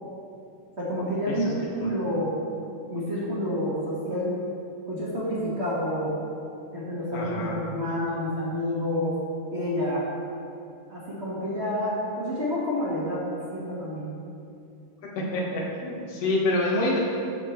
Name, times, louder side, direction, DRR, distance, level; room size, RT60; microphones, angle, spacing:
voice 1, 0.8-2.3 2.9-4.3 4.9-6.1 6.7-9.1 9.5-10.0 10.9-13.2 13.5-14.1, left 1 dB, 35° right, -8 dB, 1.1 m, -28 dB
voice 2, 7.1-7.6 15.3-17.0, left 2 dB, 55° left, -3 dB, 2.2 m, -27 dB
15.0 x 5.8 x 3.2 m, 2.5 s
omnidirectional pair, 4.0 m